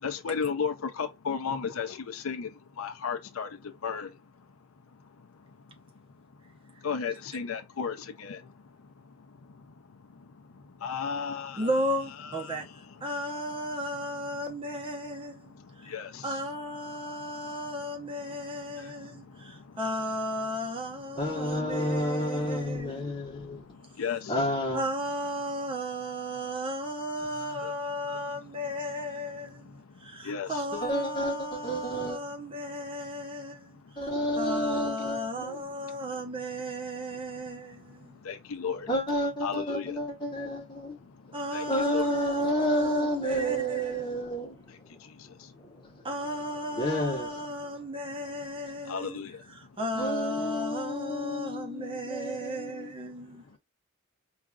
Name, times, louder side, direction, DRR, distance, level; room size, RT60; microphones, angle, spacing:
voice 1, 0.0-4.5 4.9-5.7 6.4-11.7 12.2-12.7 15.6-16.4 18.4-18.5 18.7-19.8 21.3-24.6 27.6-27.7 28.1-28.2 29.7-30.6 33.8-34.3 35.9-36.0 37.7-38.9 39.4-42.1 44.5-45.5 48.8-49.7, left 6 dB, 90° left, 0.5 m, -37 dB
voice 2, 11.6-12.7 13.0-23.1 24.7-38.2 41.3-44.2 46.0-53.5, equal, 25° right, 0.9 m, -35 dB
voice 3, 21.2-23.6 24.3-24.8 30.7-31.4 31.6-32.2 34.0-35.6 38.9-41.0 41.7-44.5 46.8-47.3 50.0-52.9, equal, 20° left, 1.1 m, -30 dB
4.8 x 2.4 x 2.4 m
head